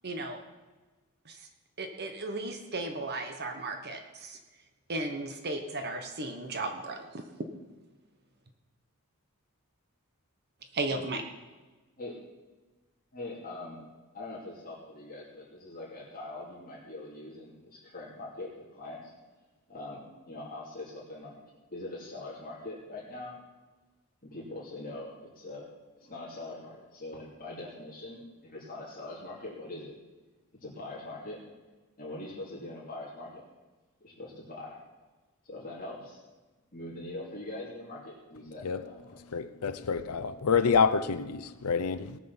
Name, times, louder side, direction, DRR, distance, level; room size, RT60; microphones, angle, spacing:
voice 1, 0.0-0.4 1.3-1.5 1.8-4.4 4.9-7.2 10.7-11.2, right 2 dB, 45° right, 1.2 m, -35 dB
voice 2, 13.1-13.8 14.1-19.1 19.7-21.4 21.7-23.3 24.2-25.1 25.3-25.7 26.0-29.9 30.6-31.4 32.0-33.4 34.0-34.8 35.4-36.2 36.7-39.2, left 2 dB, 40° left, 2.9 m, -42 dB
voice 3, 39.3-42.2, left 5 dB, 85° left, 0.6 m, -27 dB
18.5 x 6.3 x 7.2 m
head